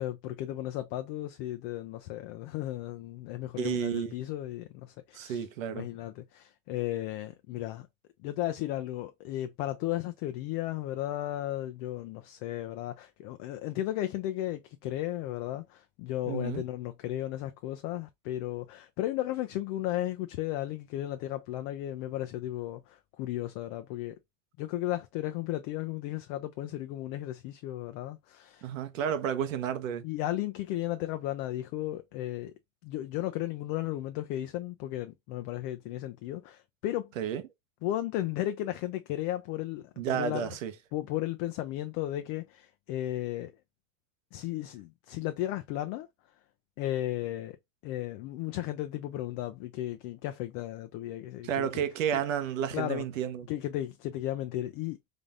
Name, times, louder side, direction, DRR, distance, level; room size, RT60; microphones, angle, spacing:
voice 1, 0.0-7.9 8.2-24.2 24.6-28.7 29.0-29.1 30.0-32.5 32.8-37.1 37.8-40.6 40.9-43.5 44.3-46.1 46.8-47.6 47.8-51.9 52.1-52.2 52.7-53.0 53.5-55.1, left 14 dB, 45° left, 0.5 m, -35 dB
voice 2, 3.6-4.1 5.1-5.9 16.3-16.6 28.6-30.0 37.2-37.4 40.0-40.7 51.4-53.5, right 8 dB, 90° right, 1.0 m, -31 dB
3.8 x 3.4 x 2.4 m
supercardioid pair, 135°, 38 cm